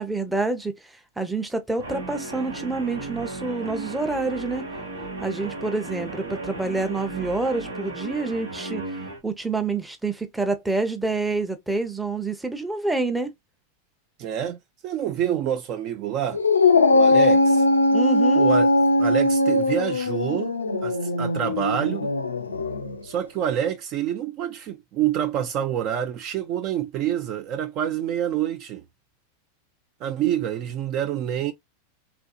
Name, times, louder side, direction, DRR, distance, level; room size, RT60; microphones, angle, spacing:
voice 1, 0.0-4.6 5.2-8.8 9.2-13.3 17.9-18.5, right 3 dB, 5° right, 0.7 m, -27 dB
Guitar, 1.8-9.2, right 2 dB, 85° right, 1.0 m, -35 dB
voice 2, 14.2-16.4 16.9-17.6 18.4-18.7 19.0-20.5 20.8-22.1 23.0-28.8 30.0-31.5, right 10 dB, 45° right, 0.4 m, -27 dB
Dog, 16.3-23.0, left 2 dB, 90° left, 0.4 m, -20 dB
2.9 x 2.6 x 2.3 m
hypercardioid pair, 95°, 0 cm